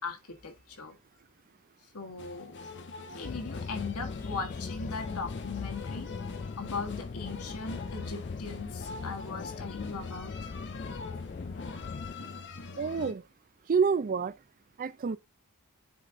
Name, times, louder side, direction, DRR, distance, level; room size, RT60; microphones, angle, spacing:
voice 1, 0.0-1.0 1.9-2.6 3.2-6.1 6.6-10.4, left 4 dB, 90° left, 1.8 m, -39 dB
sound 1, 2.2-13.1, left 4 dB, 55° left, 1.0 m, -44 dB
sound 2, 3.2-12.1, left 4 dB, 35° left, 0.3 m, -39 dB
voice 2, 12.8-13.2 13.7-14.3 14.8-15.2, right 5 dB, 40° right, 0.4 m, -27 dB
9.1 x 4.1 x 3.6 m
head